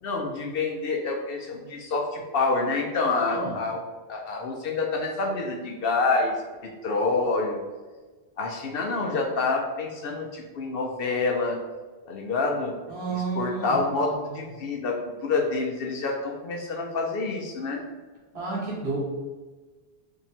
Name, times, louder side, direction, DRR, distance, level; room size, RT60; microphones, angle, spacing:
voice 1, 0.0-3.8 4.1-6.4 6.6-7.6 8.4-11.6 12.0-12.7 13.1-17.8, left 3 dB, 65° left, 0 dB, 0.7 m, -27 dB
voice 2, 12.9-13.7 18.3-19.0, right 4 dB, 65° right, -5 dB, 1.4 m, -31 dB
2.9 x 2.7 x 4.1 m, 1.3 s
omnidirectional pair, 1.2 m